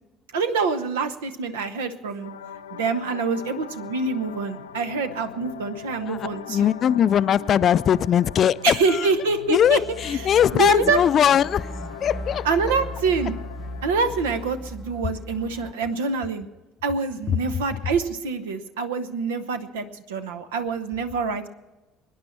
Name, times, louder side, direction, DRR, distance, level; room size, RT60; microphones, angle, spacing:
voice 1, 0.3-2.3 2.8-6.7 8.6-9.8 10.1-10.2 10.5-11.0 12.4-13.4 13.8-16.5 16.8-21.5, right 4 dB, 75° right, 9 dB, 1.0 m, -25 dB
sound 1, 2.2-14.2, left 8 dB, 80° left, 0.7 m, -40 dB
voice 2, 6.1-9.1 9.5-11.7 12.0-12.5, left 9 dB, 45° left, 17 dB, 0.4 m, -20 dB
sound 2, 9.5-15.7, equal, 10° right, 0.8 m, -37 dB
24.0 x 10.5 x 4.4 m, 1.1 s
figure-of-eight pair, 55°, 0 cm